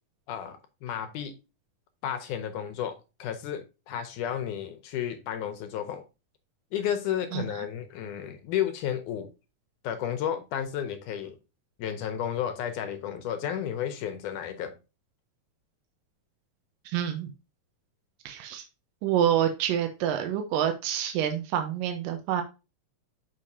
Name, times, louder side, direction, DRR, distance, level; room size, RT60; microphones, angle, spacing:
voice 1, 0.3-1.3 2.0-6.0 6.7-9.3 9.8-11.4 11.8-14.7, left 9 dB, 75° left, 2.1 m, -32 dB
voice 2, 16.9-17.3 18.3-18.6 19.0-22.4, right 10 dB, 85° right, 2.4 m, -27 dB
6.5 x 5.8 x 2.6 m
omnidirectional pair, 3.9 m